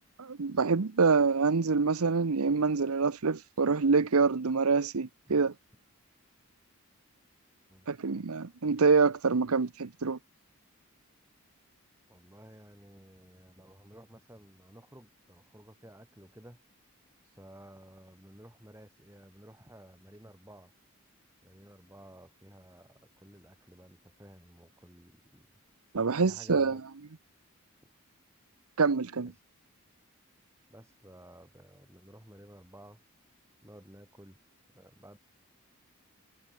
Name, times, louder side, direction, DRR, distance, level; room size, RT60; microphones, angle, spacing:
voice 1, 0.2-5.5 7.9-10.2 25.9-26.8 28.8-29.3, right 4 dB, 80° right, 0.8 m, -26 dB
voice 2, 12.1-16.6 17.4-20.7 21.4-25.5 26.2-26.8 29.2-29.3 30.7-33.0 33.6-34.4 34.7-35.2, right 1 dB, 10° right, 4.5 m, -54 dB
head